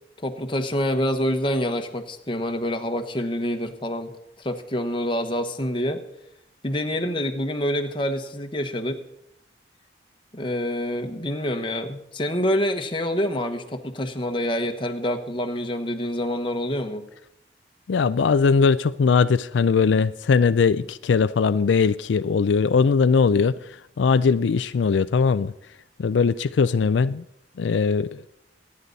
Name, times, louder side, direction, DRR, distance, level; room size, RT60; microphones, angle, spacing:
voice 1, 0.2-4.1 4.4-6.0 6.6-9.0 10.3-17.1, left 1 dB, 30° left, 1.2 m, -26 dB
voice 2, 17.9-25.5 26.0-27.2 27.6-28.2, left 5 dB, 85° left, 0.4 m, -20 dB
24.5 x 9.7 x 4.1 m
head